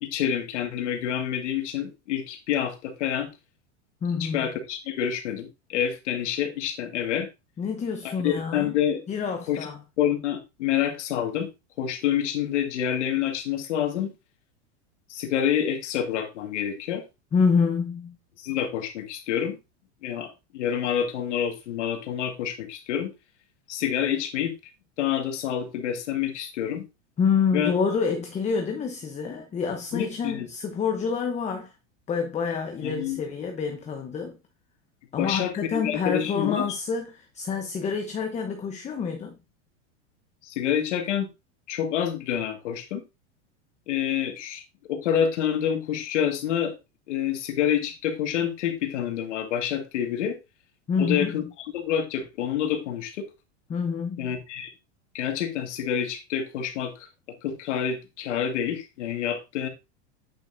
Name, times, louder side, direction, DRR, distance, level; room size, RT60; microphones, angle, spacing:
voice 1, 0.0-3.3 4.2-7.3 8.0-9.0 9.5-9.6 10.0-11.5 11.8-14.1 15.1-17.0 18.4-19.6 20.0-23.1 23.7-24.5 25.0-26.8 27.5-27.7 29.9-30.5 32.8-33.2 35.2-36.8 40.4-41.3 41.7-43.0 43.9-44.6 44.9-46.7 47.1-50.4 51.0-51.4 51.7-53.3 54.2-54.7 55.1-57.1 57.4-59.7, left 9 dB, 85° left, 1.9 m, -27 dB
voice 2, 4.0-4.5 7.6-8.7 9.1-9.8 17.3-18.2 27.2-31.7 32.1-34.4 35.1-39.4 50.9-51.4 53.7-54.4, left 5 dB, 20° left, 0.9 m, -27 dB
8.9 x 5.6 x 2.6 m
supercardioid pair, 130°, 35 cm